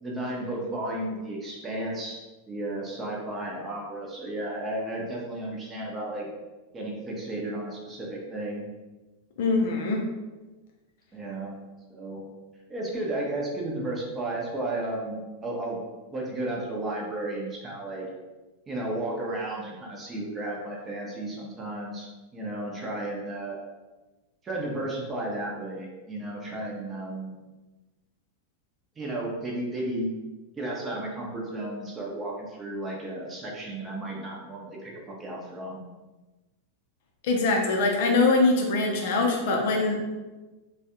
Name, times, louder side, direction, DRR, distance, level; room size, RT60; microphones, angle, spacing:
voice 1, 0.0-2.2 2.5-6.3 6.7-8.6 11.1-11.5 11.9-12.3 12.7-15.8 16.1-18.1 18.7-23.6 24.4-27.3 29.0-30.2 30.5-35.8, right 1 dB, 20° right, -2 dB, 0.7 m, -33 dB
voice 2, 9.4-10.0 37.2-40.0, left 3 dB, 50° left, 0 dB, 0.5 m, -23 dB
3.2 x 2.3 x 2.7 m, 1.2 s
figure-of-eight pair, 90°, 0 cm